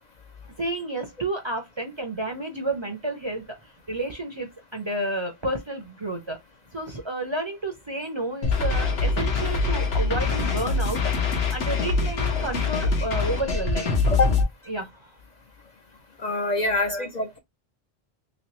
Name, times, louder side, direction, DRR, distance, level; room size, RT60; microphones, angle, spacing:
voice 1, 0.6-6.4 6.7-11.1 11.5-14.2 14.7-15.1 16.4-17.1, right 1 dB, 35° right, 0.6 m, -31 dB
sound 1, 8.4-14.4, left 4 dB, 80° left, 1.1 m, -24 dB
voice 2, 16.2-17.4, left 3 dB, 50° left, 0.6 m, -25 dB
3.1 x 3.0 x 3.0 m
omnidirectional pair, 1.1 m